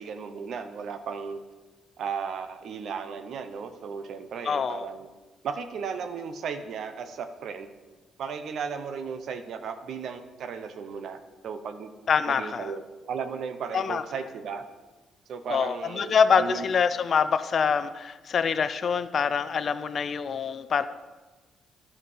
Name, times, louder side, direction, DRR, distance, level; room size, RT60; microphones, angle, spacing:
voice 1, 0.0-1.4 2.0-5.1 5.4-7.7 8.2-11.9 12.3-14.6 15.3-16.7, right 6 dB, 70° right, 9 dB, 0.8 m, -35 dB
voice 2, 4.4-4.9 12.1-12.7 13.7-14.0 15.5-20.8, left 6 dB, 50° left, 12 dB, 0.4 m, -25 dB
11.0 x 5.0 x 5.5 m, 1.3 s
cardioid pair, 90°, 0 cm